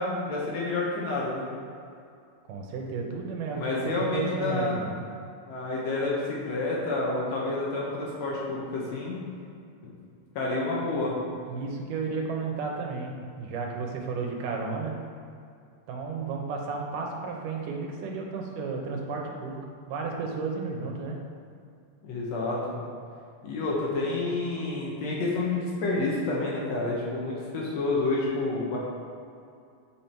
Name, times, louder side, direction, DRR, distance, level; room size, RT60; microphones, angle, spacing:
voice 1, 0.0-1.5 3.5-4.8 5.5-9.2 10.4-11.2 22.0-22.9 23.4-28.8, left 2 dB, 65° left, -4 dB, 2.1 m, -29 dB
voice 2, 2.5-5.1 11.5-14.9 15.9-19.6 19.9-21.2, right 4 dB, 85° right, 1 dB, 2.5 m, -33 dB
7.2 x 6.0 x 4.4 m, 2.4 s
omnidirectional pair, 3.7 m